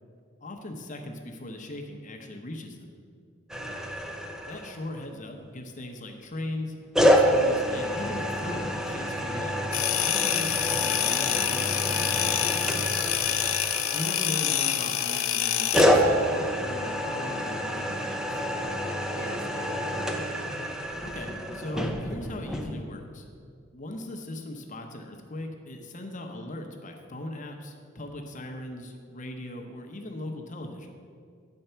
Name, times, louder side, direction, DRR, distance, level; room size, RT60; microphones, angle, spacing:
voice 1, 0.4-2.9 4.5-9.6 10.0-12.4 13.9-18.4 21.0-23.3 23.7-30.9, left 1 dB, 35° left, 4 dB, 0.7 m, -39 dB
sound 1, 3.5-5.0 6.9-14.8 15.7-22.8, equal, 5° right, 0.5 m, -28 dB
voice 2, 3.6-3.9 13.3-13.5 19.1-20.5, right 2 dB, 45° right, 1 dB, 1.2 m, -44 dB
sound 2, 9.7-15.8, left 10 dB, 75° left, 0.6 m, -27 dB
10.0 x 4.4 x 6.7 m, 2.2 s
head